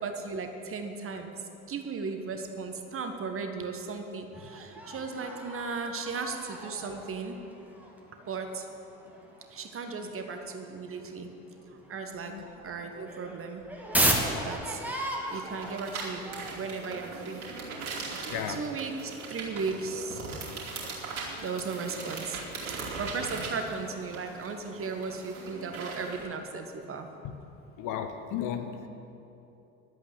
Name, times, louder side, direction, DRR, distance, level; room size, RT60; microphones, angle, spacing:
voice 1, 0.0-1.3 1.7-7.4 8.2-8.7 9.5-11.3 11.7-13.6 14.4-15.0 15.3-17.5 17.9-27.1, right 4 dB, 30° right, 5 dB, 1.3 m, -36 dB
sound 1, 4.3-11.0 11.4-11.5 11.8-20.0, right 1 dB, 5° right, 1.8 m, -36 dB
sound 2, 15.3-26.2, right 4 dB, 70° right, 2.8 m, -40 dB
voice 2, 27.8-28.9, left 9 dB, 45° left, 7 dB, 0.9 m, -34 dB
11.5 x 8.1 x 8.2 m, 2.9 s
figure-of-eight pair, 60°, 44 cm